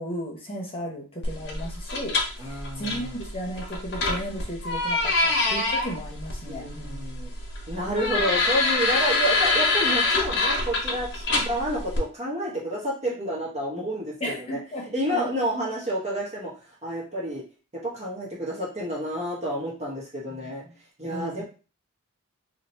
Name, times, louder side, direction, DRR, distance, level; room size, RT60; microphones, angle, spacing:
voice 1, 0.0-2.2 2.4-7.0 11.3-11.4 14.2-15.3 21.1-21.4, equal, 25° left, -2 dB, 1.0 m, -35 dB
sound 1, 1.2-12.0, left 3 dB, 50° left, 0.9 m, -26 dB
voice 2, 2.4-3.2 6.5-7.3 7.7-14.6 14.9-16.5 16.8-17.4 17.7-20.7 21.0-21.4, equal, 30° right, -4 dB, 1.1 m, -29 dB
2.8 x 2.8 x 4.3 m, 0.34 s
head